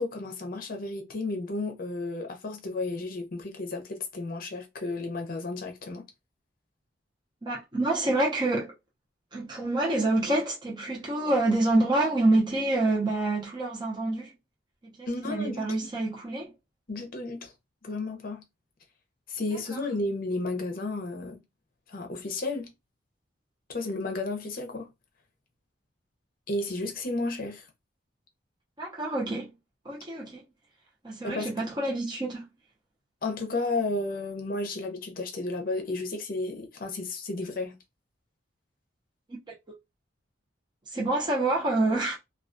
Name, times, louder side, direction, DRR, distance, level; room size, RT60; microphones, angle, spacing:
voice 1, 0.0-6.0 15.1-15.7 16.9-17.5 17.8-18.4 19.3-21.4 21.9-22.7 23.7-24.9 26.5-27.7 31.2-31.5 33.2-37.8, left 2 dB, 50° left, 0.6 m, -32 dB
voice 2, 7.4-8.7 9.3-14.3 15.0-16.5 19.7-19.8 28.8-29.5 29.8-30.4 31.0-32.5 39.7-39.8 40.9-42.2, right 2 dB, 25° right, 0.6 m, -27 dB
2.3 x 2.3 x 2.5 m
head